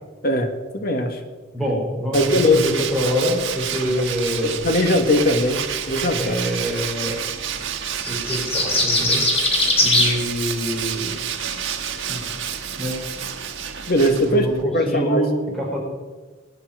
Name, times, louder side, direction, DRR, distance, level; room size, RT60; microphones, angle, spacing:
voice 1, 0.7-1.2 2.1-2.6 4.4-5.6 5.9-6.4 13.9-15.2, left 1 dB, 50° left, 6 dB, 1.7 m, -19 dB
voice 2, 1.5-4.6 6.2-7.1 8.1-9.2 9.8-11.1 12.1-12.2 12.8-12.9 14.2-15.8, equal, ahead, -4 dB, 4.1 m, -25 dB
Tools, 2.1-14.6, right 8 dB, 85° right, 1.3 m, -29 dB
sound 1, 8.0-10.1, left 2 dB, 30° left, 2.8 m, -19 dB
22.0 x 8.9 x 5.0 m, 1.3 s
head